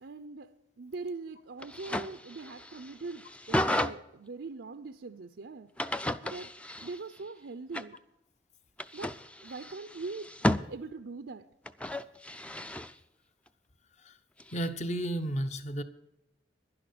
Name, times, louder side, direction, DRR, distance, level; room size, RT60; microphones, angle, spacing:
voice 1, 0.0-5.7 6.2-6.5 6.8-8.0 8.9-10.3 10.7-11.5, right 3 dB, 80° right, 0.6 m, -42 dB
sound 1, 1.6-3.9 5.8-7.2 7.7-8.0 8.8-10.6 11.7-12.9 14.4-14.7, left 1 dB, 5° left, 0.4 m, -33 dB
voice 2, 14.5-15.8, right 1 dB, 40° left, 0.9 m, -33 dB
11.0 x 11.0 x 6.8 m
head